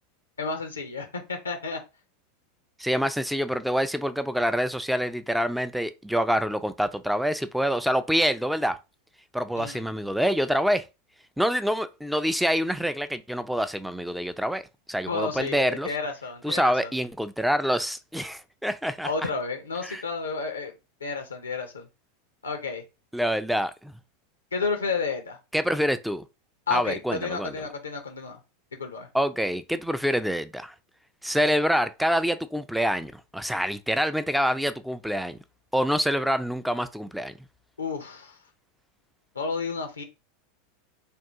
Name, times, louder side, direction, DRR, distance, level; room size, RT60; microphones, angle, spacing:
voice 1, 0.4-1.8 9.6-9.8 15.1-16.9 19.0-20.7 21.0-21.9 22.4-22.8 24.5-25.4 26.7-28.4 28.8-29.1 37.8-38.4 39.3-40.0, left 4 dB, 85° left, 0.5 m, -31 dB
voice 2, 2.8-8.8 9.3-10.9 11.4-15.9 16.4-19.1 19.8-20.0 23.1-23.9 25.5-26.3 26.7-27.5 29.1-30.7 31.2-35.4 35.7-37.3, equal, ahead, 0.3 m, -26 dB
3.4 x 2.3 x 2.8 m
figure-of-eight pair, 85°, 0 cm